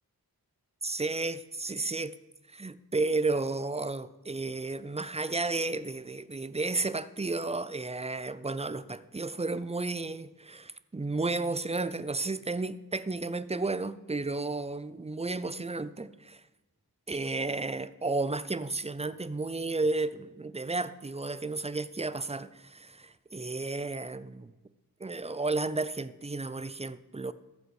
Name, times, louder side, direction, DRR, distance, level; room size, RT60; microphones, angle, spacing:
voice 1, 0.8-2.1 2.5-16.4 17.1-24.5 25.0-27.3, right 3 dB, 15° right, 0.4 m, -32 dB
14.5 x 5.3 x 4.8 m
wide cardioid pair, 45°, 39 cm